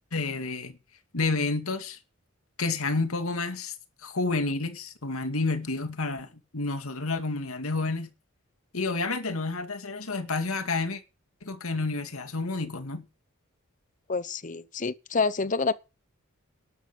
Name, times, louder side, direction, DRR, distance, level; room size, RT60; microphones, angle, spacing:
voice 1, 0.1-0.8 1.1-2.0 2.6-3.7 4.0-8.1 8.7-11.0 11.4-13.1, left 3 dB, 80° left, 2.4 m, -30 dB
voice 2, 14.1-15.7, left 4 dB, 35° left, 0.8 m, -27 dB
12.5 x 12.0 x 5.4 m
head